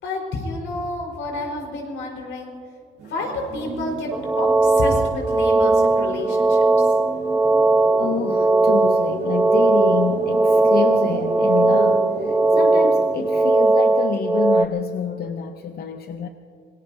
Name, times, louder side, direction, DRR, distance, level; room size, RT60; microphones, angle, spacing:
voice 1, 0.0-2.5 3.1-4.1 4.4-6.9, left 2 dB, 75° left, 0 dB, 4.4 m, -29 dB
sound 1, 3.0-13.4, right 3 dB, 80° right, 4.8 m, -31 dB
sound 2, 4.1-14.7, right 3 dB, 10° right, 0.4 m, -18 dB
voice 2, 8.0-16.3, left 7 dB, 55° left, 7 dB, 0.7 m, -28 dB
26.0 x 19.5 x 2.7 m, 2.3 s
cardioid pair, 90°, 20 cm